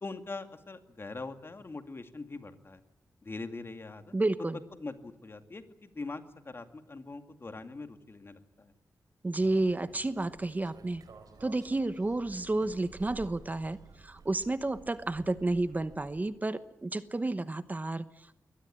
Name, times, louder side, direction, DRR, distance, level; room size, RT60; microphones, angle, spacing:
voice 1, 0.0-2.8 3.2-4.1 4.8-8.7, left 3 dB, 40° left, 8 dB, 2.3 m, -42 dB
voice 2, 4.1-4.6 9.2-11.0 11.4-18.4, right 2 dB, 25° right, 13 dB, 1.0 m, -31 dB
sound 1, 9.4-16.3, right 4 dB, 80° right, 4.0 m, -53 dB
23.0 x 18.0 x 9.9 m, 0.89 s
wide cardioid pair, 85°, 6 cm